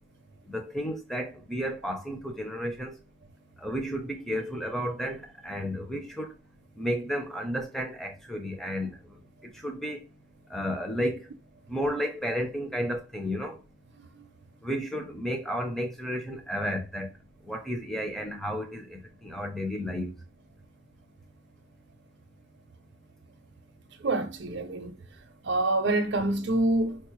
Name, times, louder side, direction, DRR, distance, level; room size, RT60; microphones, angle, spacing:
voice 1, 0.5-2.9 3.6-6.3 6.8-9.0 9.6-10.0 10.5-11.2 11.7-13.6 14.6-17.1 17.5-20.1, equal, ahead, 0.5 m, -32 dB
voice 2, 24.0-24.9 25.4-27.0, right 2 dB, 55° right, 0.5 m, -26 dB
4.5 x 2.0 x 3.0 m
head